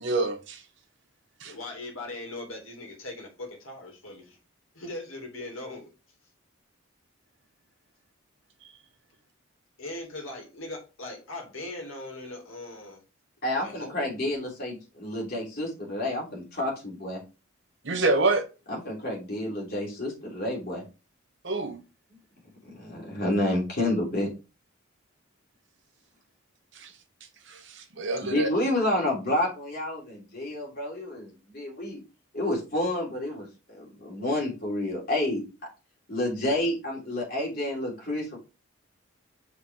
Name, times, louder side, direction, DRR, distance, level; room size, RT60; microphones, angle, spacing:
voice 1, 0.0-0.6 1.4-1.5 17.8-18.5 21.4-21.8 26.7-26.9 27.5-28.5, right 2 dB, 60° right, 1.0 m, -27 dB
voice 2, 1.4-4.4 4.7-5.9 9.8-13.0 13.6-14.2, left 2 dB, 75° left, 2.4 m, -40 dB
voice 3, 13.4-17.2 18.7-20.8 22.6-24.3 28.2-32.0 32.3-35.4 36.1-38.4, left 1 dB, 45° left, 3.3 m, -29 dB
6.3 x 4.7 x 3.6 m
head